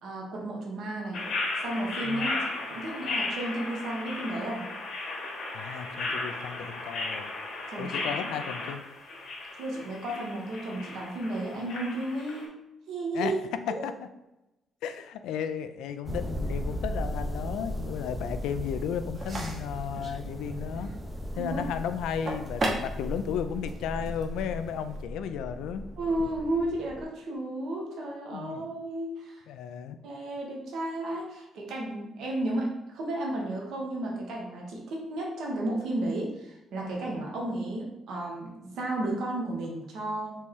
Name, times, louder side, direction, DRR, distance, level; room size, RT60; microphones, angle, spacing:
voice 1, 0.0-1.2 1.6-2.4 2.7-4.6 7.7-8.1 9.6-12.6 12.9-13.4 13.7-13.8 21.4-21.6 26.0-29.5 30.0-40.4, right 1 dB, 75° right, -2 dB, 1.1 m, -33 dB
sound 1, 1.1-12.4, left 2 dB, 75° left, 1.3 m, -35 dB
voice 2, 5.5-7.3 7.8-8.8 13.1-13.3 13.8-13.9 14.8-20.9 21.4-25.8 28.3-28.7 29.5-30.0, left 8 dB, 90° left, 10 dB, 0.3 m, -34 dB
sound 2, 16.1-27.0, equal, 15° right, 0.5 m, -37 dB
sound 3, 19.1-25.0, right 1 dB, 45° right, 1.0 m, -38 dB
4.2 x 3.0 x 3.6 m, 0.93 s
cardioid pair, 90°, 0 cm